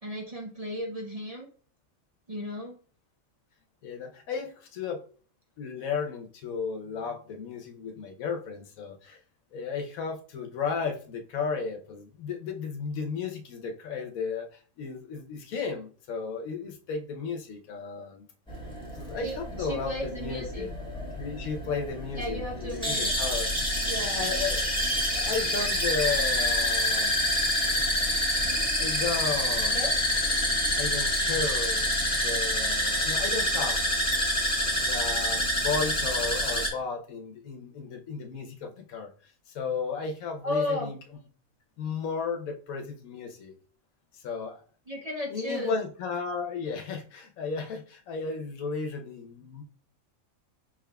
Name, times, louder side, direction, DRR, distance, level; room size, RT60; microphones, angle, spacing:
voice 1, 0.0-1.5 2.3-2.8 19.2-20.7 22.1-23.1 23.8-24.2 29.7-29.9 40.4-40.9 44.9-45.7, left 1 dB, 35° right, 0.6 m, -34 dB
voice 2, 3.8-5.1 5.6-9.2 9.5-18.3 18.9-20.7 21.2-23.5 24.0-24.8 25.1-27.2 28.8-30.0 30.8-31.9 32.2-33.8 34.8-39.1 39.5-41.0 41.8-43.5 44.1-44.6 45.3-49.6, left 5 dB, 85° left, 1.2 m, -34 dB
sound 1, 18.5-36.7, left 1 dB, 5° left, 1.4 m, -27 dB
5.2 x 3.5 x 2.2 m
omnidirectional pair, 1.4 m